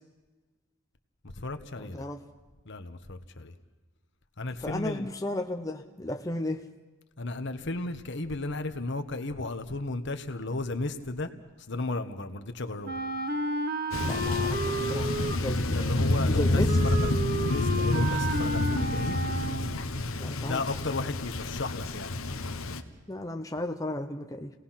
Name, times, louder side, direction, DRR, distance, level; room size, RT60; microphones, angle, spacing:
voice 1, 1.2-2.1 2.6-3.5 4.4-5.1 7.2-11.3 11.7-12.9 15.7-19.2 20.4-22.1, left 2 dB, 60° left, 8 dB, 1.3 m, -34 dB
voice 2, 1.8-2.2 4.6-6.6 14.0-15.8 16.2-16.8 20.2-20.6 23.1-24.5, left 1 dB, 15° left, 4 dB, 0.7 m, -34 dB
Wind instrument woodwind instrument, 12.8-19.8, right 1 dB, 45° right, 1.1 m, -32 dB
Thunder, 13.9-22.8, left 2 dB, 80° left, 1.2 m, -28 dB
29.0 x 18.5 x 5.9 m, 1.2 s
head